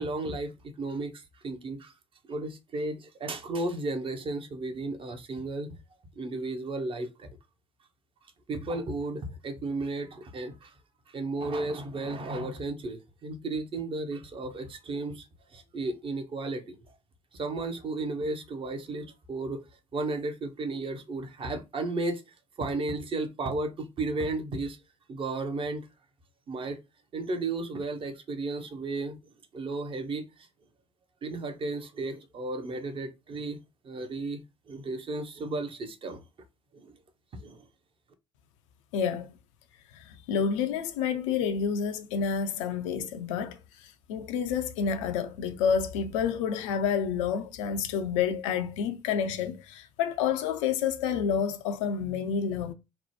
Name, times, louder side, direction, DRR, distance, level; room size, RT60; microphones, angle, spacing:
voice 1, 0.0-1.9 2.3-5.7 6.2-7.4 8.5-10.7 11.1-15.3 15.5-16.8 17.3-19.6 19.9-22.2 22.6-24.8 25.1-25.9 26.5-26.8 27.1-29.2 29.5-30.3 31.2-36.2 36.7-37.0 37.4-37.6, right 2 dB, 30° right, 0.6 m, -34 dB
voice 2, 38.9-39.3 39.9-52.7, left 7 dB, 65° left, 0.4 m, -29 dB
2.9 x 2.0 x 3.1 m
figure-of-eight pair, 55°, 17 cm